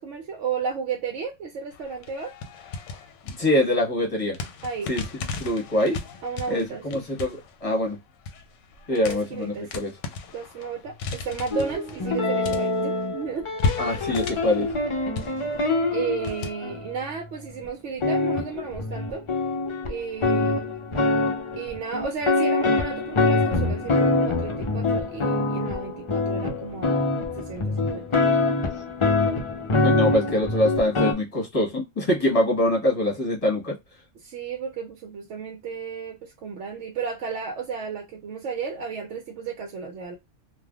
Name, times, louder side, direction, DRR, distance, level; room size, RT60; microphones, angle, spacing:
voice 1, 0.0-2.3 4.6-4.9 6.2-7.0 8.9-9.9 10.3-13.8 15.9-19.2 19.9-20.7 21.6-27.0 27.4-28.1 32.3-32.4 34.2-40.2, right 5 dB, 70° right, 0.9 m, -33 dB
sound 1, 1.7-4.0 4.3-13.1 13.6-16.5, left 4 dB, 75° left, 0.9 m, -35 dB
voice 2, 3.2-4.4 4.9-5.0 5.4-6.0 6.5-8.0 8.9-9.9 13.8-14.7 29.8-33.8, left 1 dB, 30° left, 1.2 m, -24 dB
sound 2, 11.5-17.0 17.6-17.7 18.0-31.1, left 3 dB, 45° left, 0.4 m, -25 dB
3.3 x 2.4 x 2.2 m
omnidirectional pair, 1.3 m